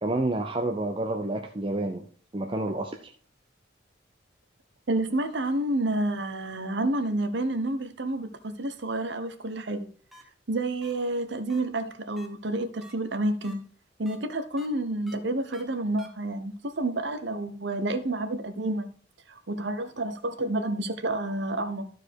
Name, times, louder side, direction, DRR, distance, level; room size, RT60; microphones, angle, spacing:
voice 1, 0.0-2.1 2.3-3.1, right 2 dB, 25° right, 0.6 m, -29 dB
voice 2, 4.9-9.9 10.5-13.6 14.0-18.9 19.3-21.9, right 2 dB, 65° right, 0.9 m, -29 dB
sound 1, 10.1-10.2 10.8-10.9 11.5-11.6 12.2-12.3 12.8-12.9 13.4-13.5 14.1-14.2 14.6-14.7 15.1-15.2 15.5-15.6 16.0-16.1, equal, ahead, 1.1 m, -49 dB
12.5 x 4.7 x 4.6 m
head